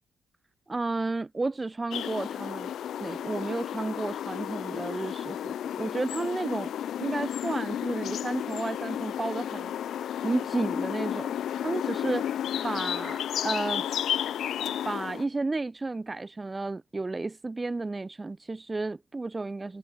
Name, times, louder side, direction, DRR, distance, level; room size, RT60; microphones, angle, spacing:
voice 1, 0.7-2.7 3.0-6.7 7.0-11.3 11.6-12.3 12.6-13.9 14.8-19.8, right 3 dB, 15° right, 4.4 m, -32 dB
sound 1, 1.9-15.2, left 10 dB, 70° left, 2.2 m, -32 dB
cardioid pair, 150°, 0 cm